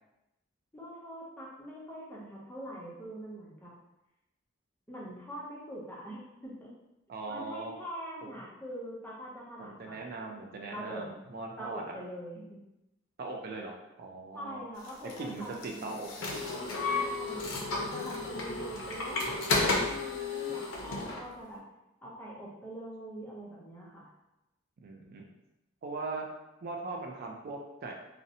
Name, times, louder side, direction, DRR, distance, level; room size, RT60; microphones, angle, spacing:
voice 1, 0.7-3.7 4.9-6.7 7.3-9.9 10.7-11.1 11.6-12.6 14.3-16.0 17.0-19.4 19.7-21.6 22.0-24.1, right 1 dB, 10° left, -5 dB, 0.5 m, -43 dB
voice 2, 7.1-7.7 9.6-11.8 13.2-14.6 15.2-16.5 24.8-25.2 25.8-26.2 26.6-27.9, right 3 dB, 50° right, 1 dB, 0.3 m, -40 dB
sound 1, 14.8-21.2, left 3 dB, 85° left, 0.5 m, -33 dB
2.6 x 2.0 x 2.7 m, 0.93 s
head